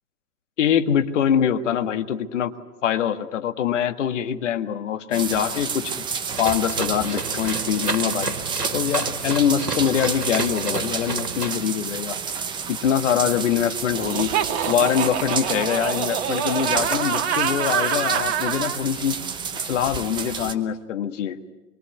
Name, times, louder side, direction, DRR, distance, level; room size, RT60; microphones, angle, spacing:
voice 1, 0.6-2.5 2.8-5.9 6.4-8.3 8.7-12.2 12.7-14.3 14.7-19.2 19.6-21.4, left 9 dB, 50° left, 8 dB, 1.8 m, -24 dB
sound 1, 5.1-20.5, right 6 dB, 10° right, 0.9 m, -30 dB
sound 2, 6.3-11.5, right 3 dB, 85° right, 1.9 m, -31 dB
Laughter, 14.0-18.8, right 8 dB, 45° right, 1.8 m, -26 dB
25.5 x 23.5 x 9.5 m, 1.1 s
figure-of-eight pair, 115°, 46 cm